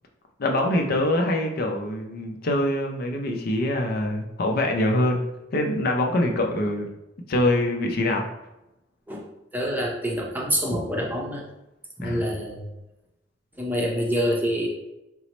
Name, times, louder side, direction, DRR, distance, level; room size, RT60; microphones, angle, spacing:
voice 1, 0.4-5.2 5.5-6.9 7.3-8.2 12.0-12.2, left 1 dB, 55° left, 2 dB, 0.5 m, -24 dB
voice 2, 9.5-11.4 12.0-12.6 13.6-14.7, equal, 10° right, -2 dB, 0.6 m, -26 dB
4.5 x 2.0 x 4.0 m, 0.92 s
head